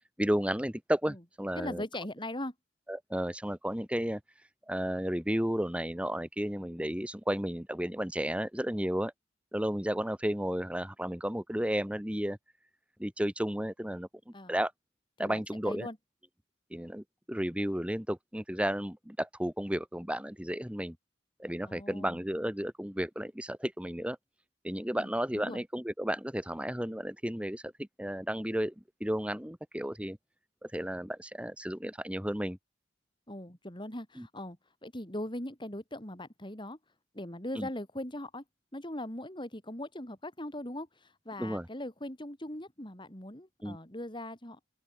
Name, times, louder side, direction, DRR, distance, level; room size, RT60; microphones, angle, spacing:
voice 1, 0.2-1.8 2.9-4.2 4.7-9.1 9.5-12.4 13.0-14.7 15.2-15.9 16.7-21.0 21.4-24.2 24.6-28.7 29.0-30.2 30.6-32.6 34.2-34.3 37.6-37.7 41.4-41.7 43.6-43.8, equal, 5° right, 2.1 m, -33 dB
voice 2, 1.5-2.5 14.3-14.6 15.2-16.0 21.6-22.2 25.0-25.1 25.3-25.6 33.3-34.6 34.8-36.8 37.1-38.4 38.7-44.6, left 1 dB, 25° left, 4.9 m, -40 dB
open air
head